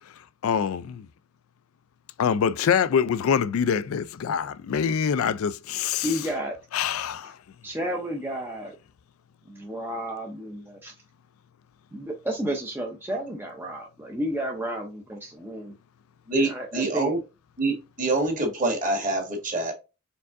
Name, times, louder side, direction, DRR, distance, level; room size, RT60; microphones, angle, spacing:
voice 1, 0.4-1.1 2.2-6.1 6.7-7.4, left 7 dB, 85° left, 0.4 m, -25 dB
voice 2, 6.0-6.6 7.6-8.8 9.5-10.9 11.9-15.7 16.3-17.1, equal, 10° right, 0.6 m, -32 dB
voice 3, 16.3-17.2 17.6-19.7, right 2 dB, 40° right, 1.8 m, -26 dB
4.5 x 3.6 x 2.5 m
head